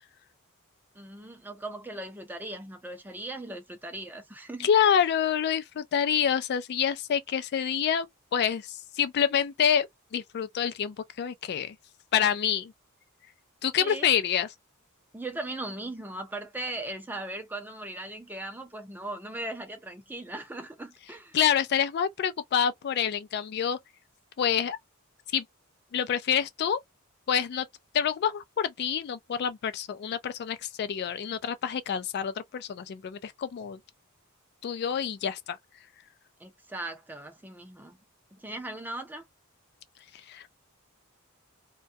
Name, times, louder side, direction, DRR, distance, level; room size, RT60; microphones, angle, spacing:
voice 1, 1.0-4.7 13.8-14.1 15.1-21.4 36.4-38.0 38.3-39.2, right 2 dB, 10° right, 0.5 m, -38 dB
voice 2, 4.6-9.9 10.1-11.7 12.1-12.7 13.6-14.5 21.3-23.8 24.4-24.8 25.3-25.4 25.9-26.8 27.3-27.7 27.9-33.8 34.6-35.6 40.3-40.4, left 8 dB, 50° left, 0.3 m, -27 dB
2.2 x 2.2 x 2.5 m
head